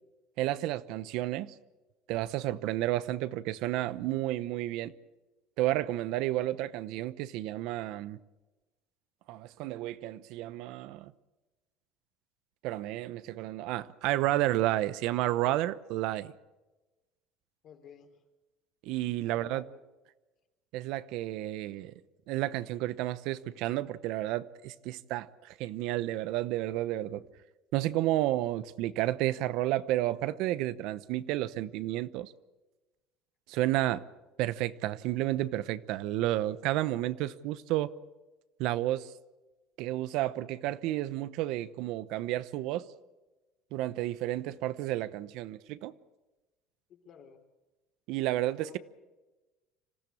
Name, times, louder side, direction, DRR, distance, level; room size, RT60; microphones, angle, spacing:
voice 1, 0.4-1.5 2.1-4.9 5.6-8.2 9.3-11.1 12.6-16.3 18.8-19.6 20.7-21.9 22.3-27.2 27.7-32.3 33.5-34.0 34.4-37.9 38.6-39.1 39.8-42.9 43.7-45.9 48.1-48.8, right 15 dB, 65° right, 0.9 m, -31 dB
voice 2, 17.6-18.2 19.2-19.8 46.9-47.4 48.6-48.8, left 8 dB, 45° left, 4.0 m, -52 dB
26.0 x 15.5 x 8.7 m
cardioid pair, 140°, 0 cm